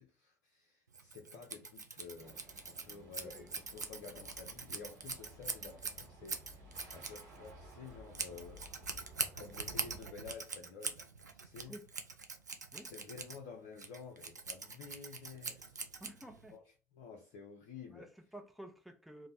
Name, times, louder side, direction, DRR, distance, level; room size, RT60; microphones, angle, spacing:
voice 1, 0.0-9.0 9.3-11.7 12.9-15.8 16.5-16.6 16.9-18.1, left 5 dB, 60° left, 0.5 m, -52 dB
Scissors, 0.9-16.6, right 4 dB, 85° right, 0.3 m, -43 dB
sound 1, 2.2-10.0, right 1 dB, 70° right, 1.0 m, -56 dB
voice 2, 2.9-3.5 11.7-11.8 12.7-12.9 16.0-16.6 17.9-19.3, right 1 dB, ahead, 0.6 m, -52 dB
3.1 x 2.0 x 4.0 m
figure-of-eight pair, 60°, 9 cm